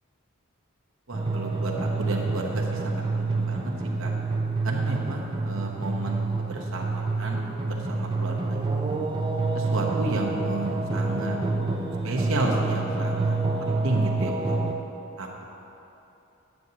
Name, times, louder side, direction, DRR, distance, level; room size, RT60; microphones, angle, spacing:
sound 1, 1.1-14.7, right 3 dB, 20° right, 0.4 m, -27 dB
voice 1, 1.1-3.7 4.0-4.1 4.6-8.4 8.8-9.0 9.5-11.4 12.0-14.6 15.2-15.4, right 2 dB, 65° right, -2 dB, 1.0 m, -32 dB
9.1 x 8.1 x 2.8 m, 2.9 s
head